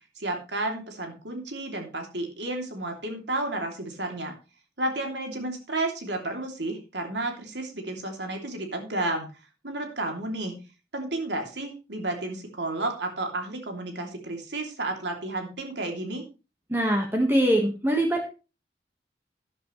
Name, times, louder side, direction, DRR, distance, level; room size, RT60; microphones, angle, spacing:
voice 1, 0.2-4.3 4.8-9.3 9.6-10.6 10.9-16.2, right 2 dB, 80° right, 3 dB, 3.0 m, -32 dB
voice 2, 16.7-18.3, right 1 dB, 15° right, 1 dB, 1.6 m, -23 dB
12.5 x 10.5 x 3.2 m, 0.31 s
head